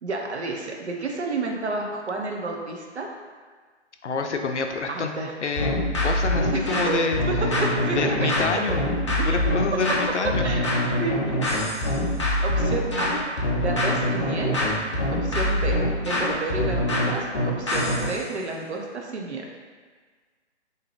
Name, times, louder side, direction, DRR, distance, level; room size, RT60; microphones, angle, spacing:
voice 1, 0.0-3.2 4.9-5.3 6.5-8.6 9.2-10.0 10.2-10.6 11.0-11.2 11.5-11.6 12.4-13.2 13.6-14.5 15.1-19.5, right 3 dB, 65° right, 1 dB, 0.7 m, -30 dB
voice 2, 4.0-5.1 5.4-7.2 7.9-8.8 9.2-10.5, left 5 dB, 75° left, 4 dB, 0.5 m, -27 dB
sound 1, 5.6-18.2, left 1 dB, 25° left, 0.4 m, -24 dB
3.6 x 2.9 x 3.0 m, 1.5 s
figure-of-eight pair, 135°, 36 cm